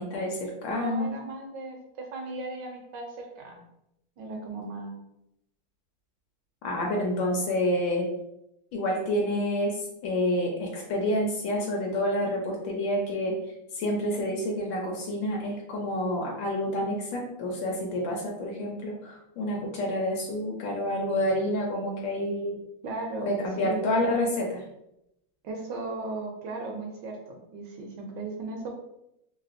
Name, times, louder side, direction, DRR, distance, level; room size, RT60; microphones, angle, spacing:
voice 1, 0.0-1.1 6.6-8.1 8.7-13.4 13.7-22.6 23.3-24.6, left 1 dB, 75° left, 0 dB, 1.3 m, -28 dB
voice 2, 0.7-3.6 4.2-4.9 22.8-23.8 25.4-28.7, right 2 dB, 75° right, 1 dB, 1.1 m, -37 dB
3.3 x 2.8 x 2.5 m, 0.83 s
omnidirectional pair, 2.3 m